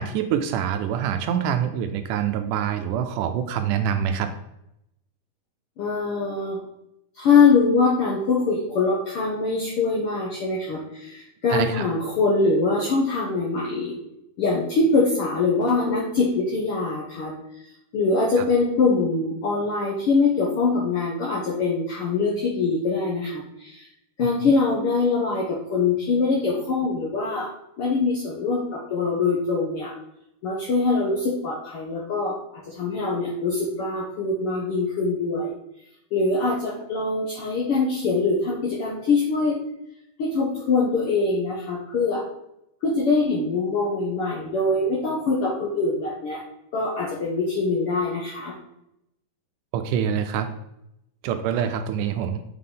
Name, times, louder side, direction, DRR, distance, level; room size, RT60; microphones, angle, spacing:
voice 1, 0.0-4.3 11.5-11.8 24.4-24.5 49.7-50.5 51.2-52.4, right 8 dB, 80° right, 7 dB, 2.0 m, -25 dB
voice 2, 5.8-6.6 7.1-14.0 14.4-17.3 17.9-23.9 24.2-27.5 27.8-29.9 30.4-35.5 36.1-39.6 40.2-42.2 42.8-46.4 46.7-48.5, left 4 dB, 70° left, -4 dB, 1.3 m, -23 dB
6.6 x 5.6 x 3.8 m, 0.83 s
omnidirectional pair, 3.8 m